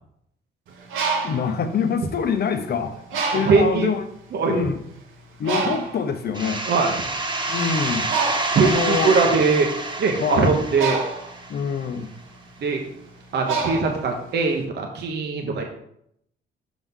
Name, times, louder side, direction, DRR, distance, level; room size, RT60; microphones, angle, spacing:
Bird, 0.7-2.6 3.1-3.8 4.5-4.6 4.9-14.6, right 4 dB, 80° right, 1.2 m, -29 dB
voice 1, 1.2-4.0 4.5-4.8 5.4-6.6 7.5-8.1 8.6-9.2 10.2-10.6 11.5-12.1, left 6 dB, 55° left, 9 dB, 0.8 m, -25 dB
voice 2, 3.5-3.9 4.3-4.6 6.7-7.0 8.5-9.7 10.0-11.0 12.6-12.8 13.3-15.6, right 4 dB, 60° right, 2 dB, 1.0 m, -21 dB
sound 1, 6.3-11.8, right 2 dB, 25° right, 1.2 m, -28 dB
6.0 x 5.5 x 3.6 m, 0.74 s
cardioid pair, 90°, 20 cm